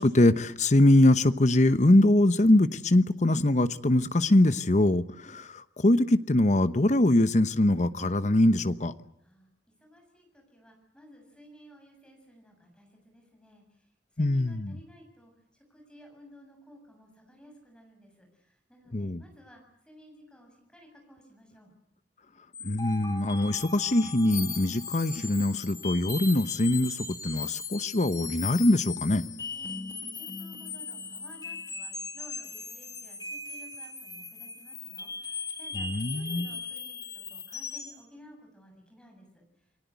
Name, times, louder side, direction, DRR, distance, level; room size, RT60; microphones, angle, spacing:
voice 1, 0.0-8.9 14.2-14.7 18.9-19.2 22.6-29.2 35.7-36.5, left 1 dB, 40° left, 13 dB, 1.0 m, -23 dB
voice 2, 9.8-13.6 14.1-21.7 29.5-39.4, equal, 5° left, 2 dB, 7.2 m, -55 dB
sound 1, 22.5-38.0, left 5 dB, 20° left, 2.0 m, -38 dB
28.5 x 20.0 x 8.3 m, 0.81 s
head